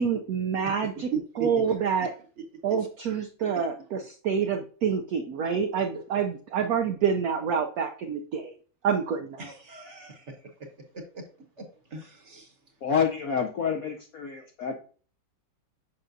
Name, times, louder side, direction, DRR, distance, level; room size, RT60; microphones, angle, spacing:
voice 1, 0.0-1.1 1.4-2.1 2.6-8.5 8.8-9.4, right 7 dB, 80° right, 4 dB, 0.8 m, -27 dB
voice 2, 1.1-1.7 9.4-10.5 10.9-11.2 11.6-12.5, right 5 dB, 50° right, 3 dB, 1.0 m, -37 dB
voice 3, 12.8-14.8, left 7 dB, 70° left, 2 dB, 0.8 m, -28 dB
7.3 x 5.5 x 2.6 m, 0.42 s
omnidirectional pair, 2.2 m